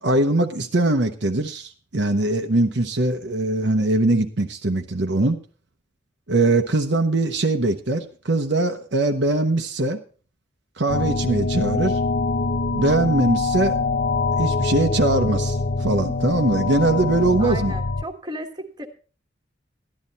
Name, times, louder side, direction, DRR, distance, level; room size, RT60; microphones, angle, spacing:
voice 1, 0.0-5.4 6.3-10.0 10.8-12.0 12.7-13.8 14.4-17.7, right 2 dB, 65° right, 5 dB, 0.9 m, -21 dB
sound 1, 10.9-18.0, left 3 dB, 85° left, 0.9 m, -24 dB
voice 2, 17.4-18.9, right 1 dB, 25° right, 4 dB, 1.5 m, -34 dB
13.0 x 11.0 x 4.2 m, 0.38 s
head